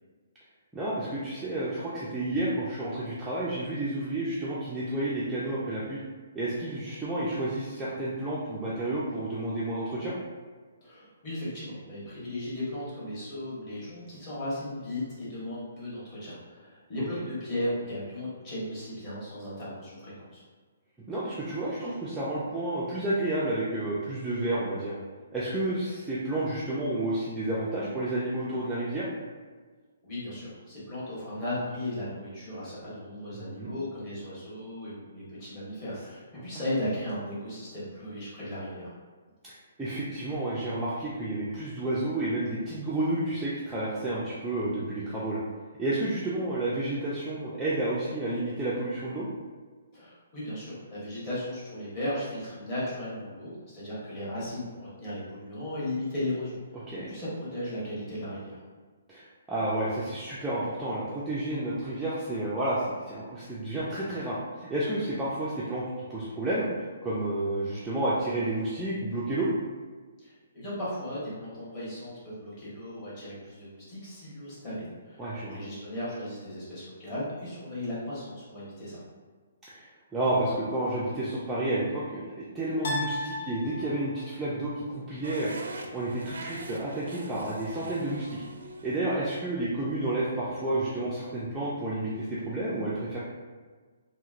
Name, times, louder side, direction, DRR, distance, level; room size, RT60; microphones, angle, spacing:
voice 1, 0.7-6.0 6.3-10.1 21.1-24.9 25.3-29.1 33.3-33.7 36.3-36.4 39.4-45.4 45.8-49.3 56.9-57.1 59.1-65.8 66.1-69.5 75.2-75.6 79.7-82.2 82.5-85.6 85.9-88.4 88.8-93.2, right 1 dB, 5° right, -10 dB, 0.3 m, -30 dB
voice 2, 10.8-20.4 30.0-38.9 49.9-58.6 70.2-79.0, left 1 dB, 25° left, -10 dB, 1.2 m, -36 dB
sound 1, 80.3-81.0 82.8-84.3, left 3 dB, 50° left, 0.6 m, -36 dB
sound 2, 85.2-91.3, right 2 dB, 85° right, 0.4 m, -44 dB
2.9 x 2.7 x 2.4 m, 1.4 s
hypercardioid pair, 170°, 0 cm